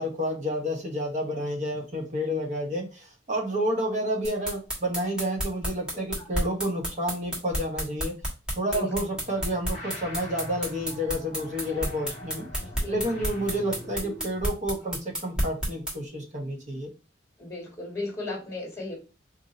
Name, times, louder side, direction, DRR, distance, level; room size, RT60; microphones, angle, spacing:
voice 1, 0.0-8.1 8.6-16.9, equal, 40° right, 0 dB, 0.9 m, -30 dB
sound 1, 4.2-15.9, equal, 5° right, 1.3 m, -30 dB
voice 2, 5.9-6.3 8.7-8.9 11.7-11.8 12.8-13.2 17.4-19.0, left 2 dB, 15° left, -3 dB, 1.5 m, -36 dB
sound 2, 9.0-14.5, left 1 dB, 35° left, 1.1 m, -43 dB
2.6 x 2.6 x 4.0 m, 0.31 s
head